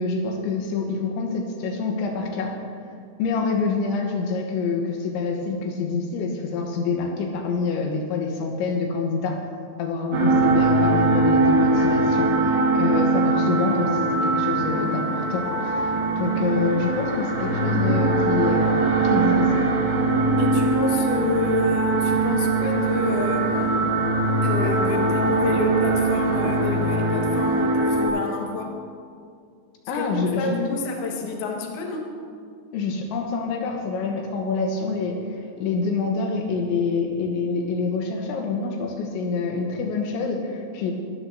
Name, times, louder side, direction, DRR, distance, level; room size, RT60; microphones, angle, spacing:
voice 1, 0.0-2.5 3.2-9.4 9.8-18.8 19.1-19.7 29.9-30.8 32.7-40.9, left 4 dB, 85° left, 1 dB, 3.4 m, -26 dB
sound 1, 10.1-28.1, right 3 dB, 60° right, 4.3 m, -21 dB
voice 2, 20.4-23.8 24.3-28.8 29.9-30.1 30.3-32.1, left 4 dB, 65° left, 0 dB, 3.1 m, -29 dB
22.5 x 12.5 x 2.7 m, 2.3 s
omnidirectional pair, 5.3 m